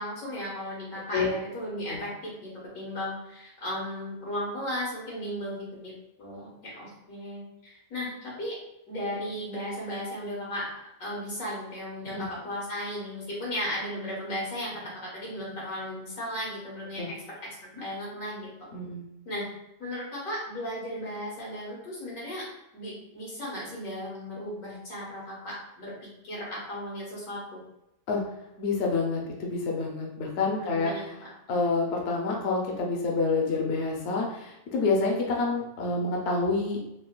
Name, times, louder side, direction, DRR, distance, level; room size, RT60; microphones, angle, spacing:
voice 1, 0.0-8.5 8.9-10.7 11.0-17.2 17.6-18.5 19.2-19.5 19.8-22.5 22.7-27.6 30.6-31.3, equal, 90° left, -6 dB, 1.6 m, -35 dB
voice 2, 18.7-19.0 28.1-28.2 28.6-31.1 31.5-36.8, left 3 dB, 65° left, -1 dB, 0.8 m, -28 dB
3.7 x 2.1 x 2.2 m, 0.86 s
omnidirectional pair, 1.4 m